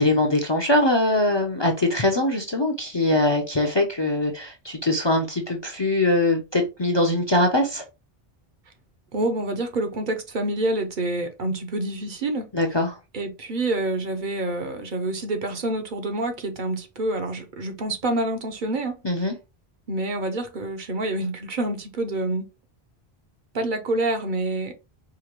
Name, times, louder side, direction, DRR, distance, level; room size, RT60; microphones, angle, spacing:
voice 1, 0.0-7.8 12.5-13.0 19.0-19.3, left 2 dB, 35° left, 0.5 m, -22 dB
voice 2, 9.1-12.5 13.1-19.3 19.9-22.5 23.5-24.7, right 2 dB, 55° right, 0.8 m, -27 dB
4.8 x 2.2 x 2.9 m
omnidirectional pair, 1.0 m